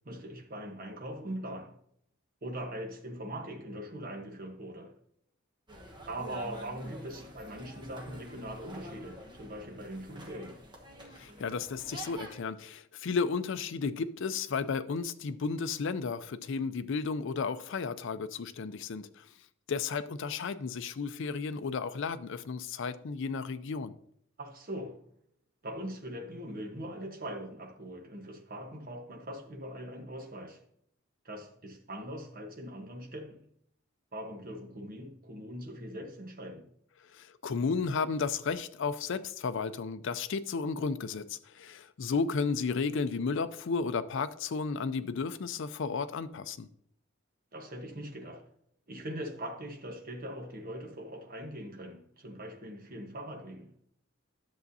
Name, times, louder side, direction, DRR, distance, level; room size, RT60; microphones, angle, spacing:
voice 1, 0.0-1.8 2.4-4.9 6.1-10.6 24.4-25.0 25.6-30.6 31.2-33.4 34.1-36.7 47.5-48.4 48.9-53.7, right 1 dB, 45° right, 1.2 m, -41 dB
sound 1, 5.7-12.4, right 1 dB, 25° right, 1.1 m, -48 dB
voice 2, 11.2-19.3 19.7-23.9 37.1-46.7, left 5 dB, 65° left, 0.5 m, -33 dB
10.5 x 7.0 x 2.7 m
head